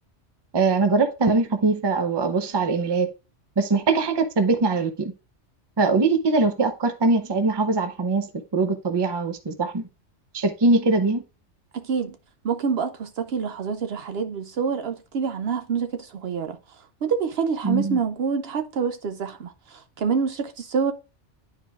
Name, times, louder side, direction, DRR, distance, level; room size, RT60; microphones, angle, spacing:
voice 1, 0.5-3.1 3.6-5.1 5.8-8.3 8.5-9.9 10.3-11.2 17.6-18.0, right 3 dB, 30° right, 0.6 m, -22 dB
voice 2, 11.7-12.2 12.4-16.6 17.0-20.9, right 6 dB, 65° right, 0.8 m, -27 dB
10.0 x 4.6 x 2.3 m
omnidirectional pair, 1.2 m